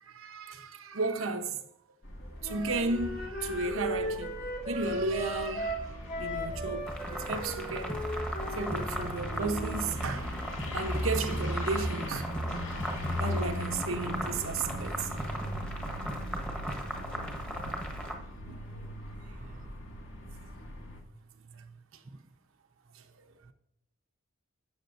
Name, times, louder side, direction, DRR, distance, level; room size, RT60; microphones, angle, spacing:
voice 1, 0.1-1.6 2.4-4.3 4.7-5.8 6.2-8.0 8.6-10.3 10.7-12.3 13.2-15.1 16.8-17.0 18.5-18.6, right 3 dB, 85° right, 1.0 m, -34 dB
sound 1, 2.0-21.0, equal, 75° left, 2.0 m, -38 dB
Wind instrument woodwind instrument, 2.4-9.8, equal, 45° left, 2.4 m, -37 dB
sound 2, 6.9-18.1, equal, 5° left, 1.3 m, -38 dB
voice 2, 19.3-19.7 21.4-22.2 23.5-23.6, right 3 dB, 40° right, 0.5 m, -50 dB
11.5 x 8.2 x 2.6 m
head